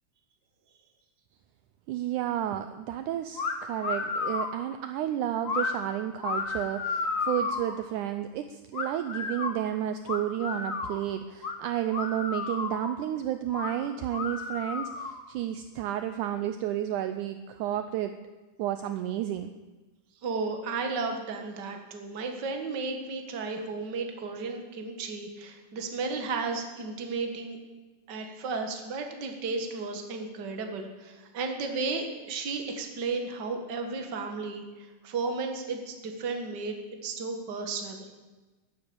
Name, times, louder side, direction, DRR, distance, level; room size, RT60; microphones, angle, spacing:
voice 1, 1.9-18.2 18.6-19.5, right 11 dB, 80° right, 9 dB, 1.9 m, -31 dB
sound 1, 3.4-3.5 3.8-4.6 5.4-5.7 6.2-7.7 8.7-9.6 10.1-11.0 11.4-11.5 11.9-13.0 13.5-13.7 14.1-15.2, left 4 dB, 70° left, 0.7 m, -32 dB
voice 2, 20.2-27.6 28.1-36.8 37.0-38.0, right 4 dB, 40° right, 4 dB, 1.8 m, -34 dB
14.0 x 9.7 x 8.8 m, 1.2 s
omnidirectional pair, 3.9 m